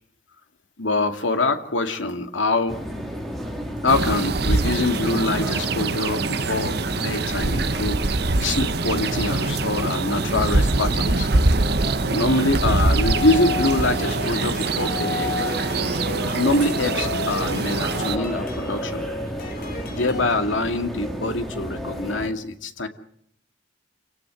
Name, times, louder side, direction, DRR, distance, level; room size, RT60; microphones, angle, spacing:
voice 1, 0.8-2.8 3.8-8.0 8.4-11.3 12.0-15.3 16.1-19.1 19.9-22.9, left 2 dB, 90° left, 7 dB, 2.3 m, -24 dB
sound 1, 2.7-22.3, equal, ahead, 3.6 m, -32 dB
sound 2, 3.9-18.2, right 3 dB, 55° right, 1.0 m, -24 dB
sound 3, 12.9-20.3, left 3 dB, 50° left, 3.6 m, -33 dB
28.5 x 17.5 x 7.7 m, 0.71 s
head